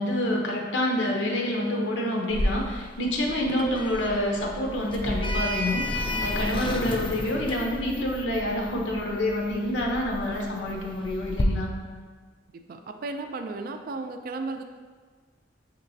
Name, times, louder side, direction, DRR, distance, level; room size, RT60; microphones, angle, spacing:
voice 1, 0.0-11.7, left 1 dB, 75° left, 0 dB, 0.7 m, -27 dB
Sliding door, 2.3-11.4, left 1 dB, 30° left, 0.3 m, -32 dB
voice 2, 12.7-14.6, right 3 dB, 50° right, 6 dB, 0.3 m, -34 dB
6.2 x 2.9 x 2.7 m, 1.5 s
head